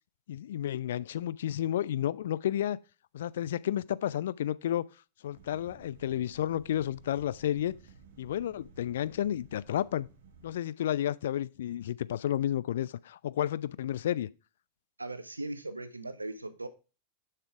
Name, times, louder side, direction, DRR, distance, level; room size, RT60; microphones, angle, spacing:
voice 1, 0.3-2.8 3.1-4.9 5.2-7.7 8.2-10.1 10.4-14.3, left 11 dB, 60° left, 0.3 m, -31 dB
sound 1, 5.3-10.6, right 4 dB, 60° right, 1.5 m, -55 dB
voice 2, 15.0-16.7, right 2 dB, 80° right, 0.7 m, -39 dB
6.9 x 5.7 x 4.8 m
figure-of-eight pair, 90°, 0 cm